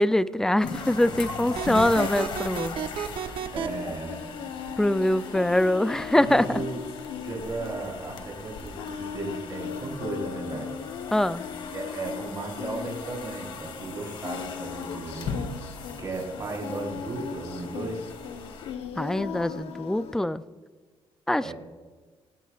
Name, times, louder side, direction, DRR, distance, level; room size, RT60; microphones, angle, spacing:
voice 1, 0.0-2.7 4.8-6.4 11.1-11.5 19.0-20.4 21.3-21.5, left 1 dB, 5° left, 15 dB, 0.4 m, -23 dB
sound 1, 0.6-19.5, left 5 dB, 60° left, 1.9 m, -39 dB
sound 2, 1.5-3.7, right 9 dB, 60° right, 0.9 m, -32 dB
voice 2, 3.5-4.2 6.1-6.8 7.2-10.7 11.6-15.4 16.0-18.0 21.4-21.5, right 3 dB, 35° right, -1 dB, 4.1 m, -35 dB
Singing, 3.6-20.2, left 7 dB, 85° left, 1.0 m, -39 dB
18.5 x 17.5 x 2.4 m, 1.4 s
cardioid pair, 135°, 10 cm